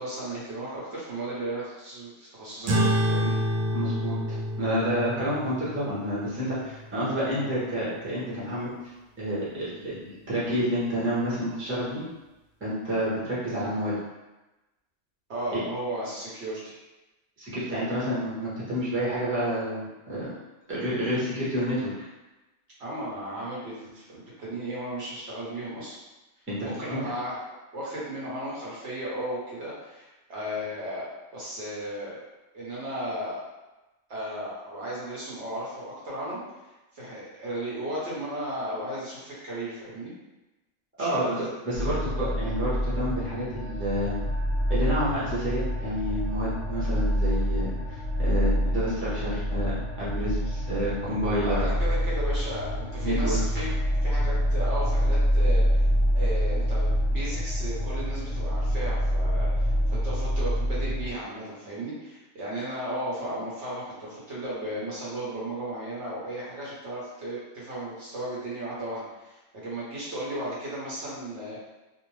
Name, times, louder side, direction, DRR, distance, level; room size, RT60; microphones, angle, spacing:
voice 1, 0.0-3.3 15.3-16.8 22.8-26.0 26.6-27.4 27.7-31.0 31.3-32.2 32.5-33.4 34.1-36.4 36.9-40.1 41.0-41.2 51.4-53.7 54.0-55.9 56.1-71.7, right 1 dB, 60° right, -7 dB, 0.9 m, -35 dB
sound 1, 2.7-7.5, equal, 90° right, 1.0 m, -28 dB
voice 2, 3.7-8.7 9.2-12.0 12.6-13.9 15.5-15.6 17.4-20.3 20.7-21.9 26.5-27.0 41.0-41.3 41.6-44.1 44.7-51.6 53.0-53.6, equal, 10° right, -9 dB, 0.7 m, -29 dB
sound 2, 41.7-61.1, equal, 60° left, 0.8 m, -26 dB
2.6 x 2.0 x 3.0 m, 1.1 s
omnidirectional pair, 1.3 m